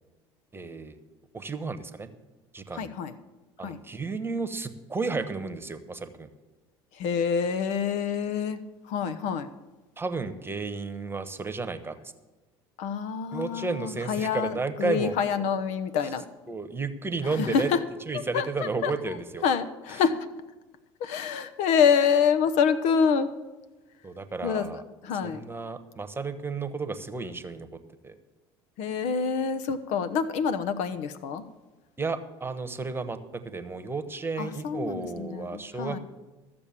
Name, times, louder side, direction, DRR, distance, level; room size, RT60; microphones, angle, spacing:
voice 1, 0.5-1.0 1.3-2.1 2.5-2.9 3.6-6.3 10.0-11.9 13.3-15.1 16.5-17.7 18.1-19.4 24.0-24.8 25.2-27.7 28.0-28.1 32.0-33.2 33.4-36.0, right 4 dB, 15° right, 11 dB, 1.1 m, -32 dB
voice 2, 2.7-3.1 3.6-3.8 7.0-8.6 8.9-9.5 12.8-16.2 17.2-17.8 18.3-19.2 19.4-20.2 21.0-23.3 24.4-25.4 28.8-31.4 34.4-36.0, left 6 dB, 65° left, 10 dB, 0.9 m, -27 dB
14.0 x 6.9 x 7.3 m, 1.2 s
hypercardioid pair, 75°, 13 cm